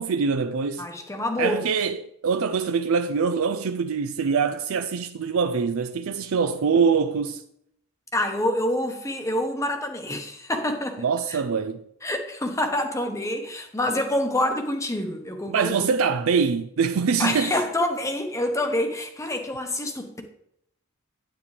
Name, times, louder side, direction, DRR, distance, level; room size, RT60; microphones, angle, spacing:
voice 1, 0.0-0.9 1.4-7.4 11.0-11.8 15.5-17.5, right 5 dB, 70° right, 0.4 m, -24 dB
voice 2, 0.8-1.6 8.1-11.0 11.3-11.4 12.0-15.8 17.2-20.2, left 1 dB, 15° left, 0.9 m, -27 dB
9.6 x 8.5 x 3.3 m
head